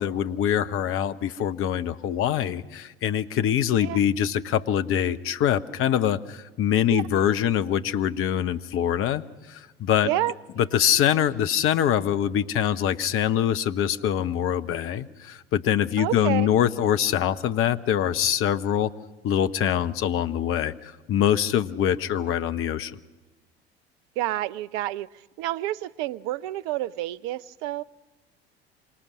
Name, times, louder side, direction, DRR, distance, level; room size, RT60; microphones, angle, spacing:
voice 1, 0.0-10.1 10.6-18.9 19.2-22.9, left 10 dB, 45° left, 12 dB, 1.0 m, -24 dB
voice 2, 10.0-10.3 16.0-16.5 24.2-25.1 25.4-27.8, right 15 dB, 55° right, 16 dB, 0.7 m, -29 dB
26.5 x 25.0 x 6.3 m, 1.2 s
figure-of-eight pair, 70°, 30 cm